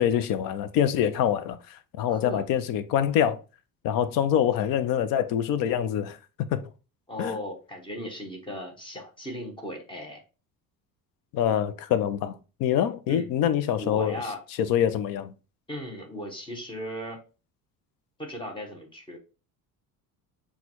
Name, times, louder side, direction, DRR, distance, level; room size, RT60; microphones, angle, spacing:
voice 1, 0.0-3.4 3.8-6.2 6.5-6.6 7.2-7.4 11.3-12.3 12.6-14.2 14.6-15.3, left 9 dB, 70° left, 0.5 m, -25 dB
voice 2, 2.1-2.5 4.3-4.5 7.1-10.2 13.1-13.3 13.8-14.4 15.7-17.2 18.2-19.2, equal, 15° left, 0.8 m, -37 dB
6.1 x 2.3 x 2.9 m
cardioid pair, 165°, 36 cm